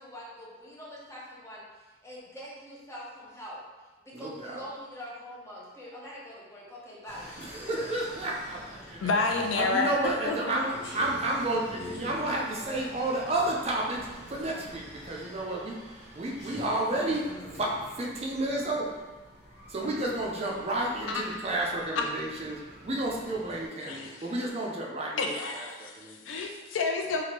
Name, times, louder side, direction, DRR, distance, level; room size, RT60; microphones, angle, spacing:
voice 1, 0.0-3.6 4.1-7.4, equal, 15° left, -5 dB, 0.6 m, -44 dB
voice 2, 4.1-4.7 7.4-9.2 9.5-15.8 16.1-17.3 17.6-18.9 19.7-26.2, right 2 dB, 30° right, -2 dB, 0.4 m, -31 dB
sound 1, 7.0-23.7, left 1 dB, 65° left, 0.8 m, -46 dB
voice 3, 9.0-9.9 10.3-10.6 21.1-21.2 22.0-22.1 23.9-24.2 25.2-27.2, left 4 dB, 85° left, 3 dB, 0.4 m, -29 dB
3.1 x 2.4 x 3.0 m, 1.2 s
head